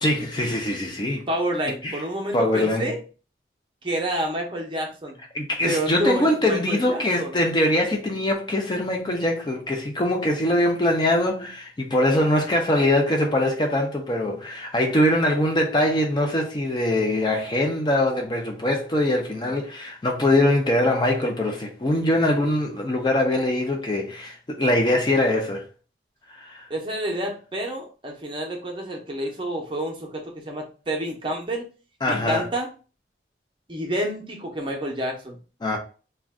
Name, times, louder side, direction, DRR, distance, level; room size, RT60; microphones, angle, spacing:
voice 1, 0.0-1.3 1.8-2.0 2.3-2.9 5.3-25.7 26.3-26.7 32.0-32.5 35.6-35.8, left 1 dB, 25° left, 0.4 m, -22 dB
voice 2, 1.3-3.0 3.8-5.2 5.6-7.4 26.7-31.7 32.1-32.7 33.7-35.4, right 1 dB, 25° right, 0.6 m, -29 dB
2.4 x 2.1 x 3.4 m
head